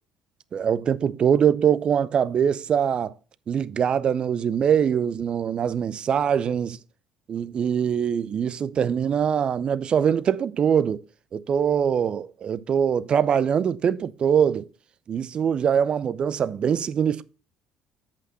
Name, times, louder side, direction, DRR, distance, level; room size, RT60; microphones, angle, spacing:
voice 1, 0.5-3.1 3.5-6.8 7.3-11.0 11.3-14.7 15.1-17.2, right 8 dB, 40° right, 0.5 m, -23 dB
7.9 x 5.2 x 5.0 m
figure-of-eight pair, 55°, 2 cm